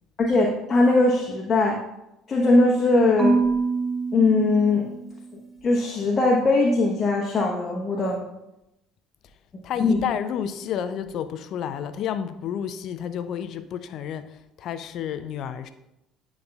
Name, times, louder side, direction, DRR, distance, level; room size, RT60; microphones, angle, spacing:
voice 1, 0.2-1.8 2.3-3.4 4.1-4.9 5.6-8.2 9.8-10.0, left 2 dB, 35° left, -1 dB, 0.9 m, -20 dB
Marimba xylophone / Wood, 3.2-5.4, right 3 dB, 15° right, 0.9 m, -25 dB
voice 2, 9.6-15.7, left 8 dB, 55° left, 11 dB, 0.5 m, -31 dB
9.3 x 5.3 x 2.3 m, 0.90 s
figure-of-eight pair, 60°, 0 cm